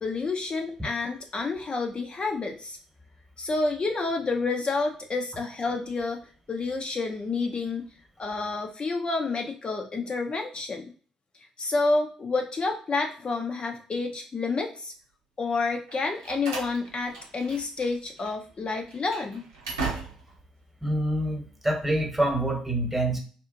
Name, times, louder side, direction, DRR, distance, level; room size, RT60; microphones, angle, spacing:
voice 1, 0.0-2.8 3.4-7.9 8.2-10.9 11.6-14.9 15.4-19.4, left 3 dB, 40° left, 3 dB, 0.5 m, -29 dB
Slam, 15.9-17.9 18.2-18.3 18.9-20.4, right 4 dB, 85° right, 0.7 m, -36 dB
voice 2, 20.8-23.2, right 1 dB, 10° right, 3 dB, 1.0 m, -26 dB
2.9 x 2.4 x 2.5 m, 0.41 s
hypercardioid pair, 40°, 3 cm